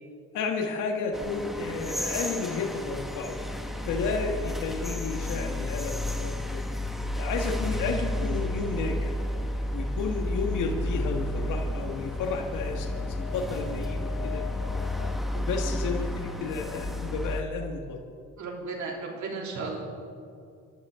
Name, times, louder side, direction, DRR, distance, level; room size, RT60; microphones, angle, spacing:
voice 1, 0.3-3.4 3.9-6.6 7.1-9.2 9.7-12.9 13.3-14.4 15.3-18.0, left 4 dB, 90° left, 1 dB, 1.8 m, -32 dB
sound 1, 1.1-17.4, left 1 dB, ahead, 1.7 m, -32 dB
sound 2, 7.4-15.2, left 4 dB, 50° left, 3.1 m, -41 dB
voice 2, 18.4-19.8, right 4 dB, 70° right, -1 dB, 3.5 m, -34 dB
29.5 x 12.5 x 3.8 m, 2.3 s
cardioid pair, 90°, 30 cm